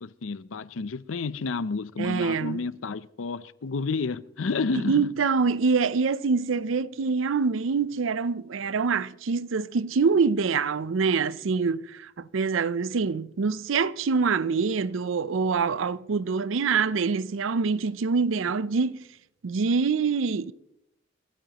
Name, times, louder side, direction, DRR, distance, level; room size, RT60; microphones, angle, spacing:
voice 1, 0.0-5.1, left 4 dB, 75° left, 0.6 m, -30 dB
voice 2, 2.0-2.6 4.7-19.0 19.4-20.5, right 5 dB, 75° right, 0.5 m, -25 dB
29.5 x 14.0 x 2.9 m
head